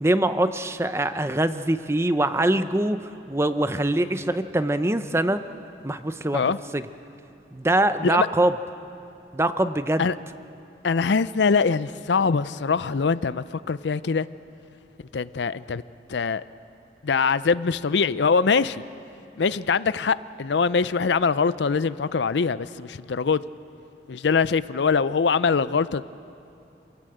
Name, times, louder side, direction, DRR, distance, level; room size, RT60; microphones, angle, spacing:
voice 1, 0.0-5.4 5.8-6.4 6.7-6.8 7.5-8.5 9.3-10.0, right 1 dB, 15° right, 11 dB, 0.6 m, -23 dB
voice 2, 10.8-14.3 15.1-15.8 16.1-16.4 17.0-18.8 19.4-23.4 24.1-26.0, left 5 dB, 80° left, 16 dB, 0.5 m, -23 dB
27.0 x 17.0 x 7.9 m, 2.7 s
head